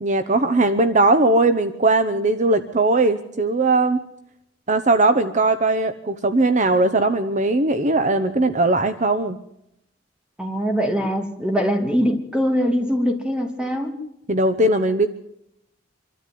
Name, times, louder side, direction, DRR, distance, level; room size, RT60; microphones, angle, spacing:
voice 1, 0.0-4.0 4.7-9.4 14.3-15.1, right 2 dB, 40° right, 10 dB, 1.0 m, -19 dB
voice 2, 10.4-13.9, equal, 5° right, 4 dB, 2.9 m, -22 dB
25.5 x 13.0 x 9.4 m, 0.79 s
head